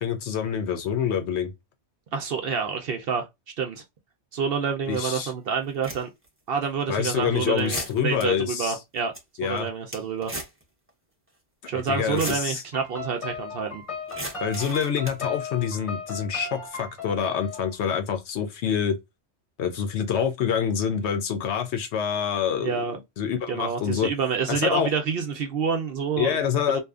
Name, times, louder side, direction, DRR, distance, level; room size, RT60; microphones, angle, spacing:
voice 1, 0.0-1.5 4.9-5.3 6.9-8.7 9.4-9.7 11.7-12.6 14.4-19.0 19.6-22.8 23.2-24.1 24.5-24.9 26.2-26.8, left 8 dB, 70° left, 0.9 m, -26 dB
voice 2, 2.1-3.3 3.6-3.8 4.3-6.1 6.5-9.1 9.4-10.3 11.7-13.8 22.6-23.0 23.5-26.4 26.7-26.8, right 6 dB, 60° right, 0.7 m, -28 dB
sound 1, 4.9-5.0 5.6-6.3 6.8-6.9 7.6-8.2 8.7-8.8 9.0-9.2 9.6-10.6 10.9-11.0 12.0-12.5 14.1-15.2, right 1 dB, 15° right, 0.5 m, -36 dB
sound 2, 12.7-17.8, left 4 dB, 30° left, 0.8 m, -37 dB
2.7 x 2.3 x 2.3 m
omnidirectional pair, 1.3 m